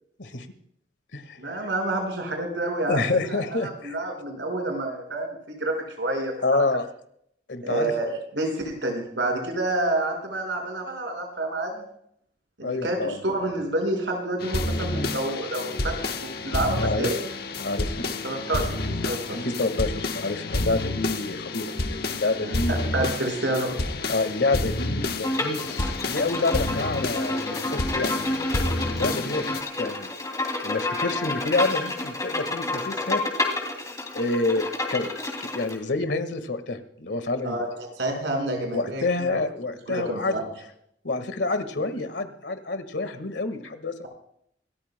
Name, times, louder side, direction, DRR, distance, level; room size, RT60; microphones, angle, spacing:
voice 1, 1.4-6.6 7.6-8.1 8.3-11.9 12.6-17.2 18.2-19.4 22.4-23.7 37.4-39.0 39.9-40.5, right 2 dB, 85° right, 3 dB, 5.4 m, -29 dB
voice 2, 2.9-4.0 6.4-6.9 7.5-7.9 12.6-13.2 16.8-17.1 17.6-18.0 19.3-23.0 24.1-28.1 28.9-30.1 30.6-33.2 34.1-34.6 34.9-35.1 35.4-37.6 38.7-40.4 41.0-44.1, left 3 dB, 80° left, 9 dB, 1.7 m, -28 dB
sound 1, 14.4-29.6, left 2 dB, 60° left, 1.2 m, -29 dB
Bowed string instrument, 25.2-35.7, left 2 dB, 20° left, 2.7 m, -29 dB
27.0 x 14.0 x 2.2 m, 0.70 s
head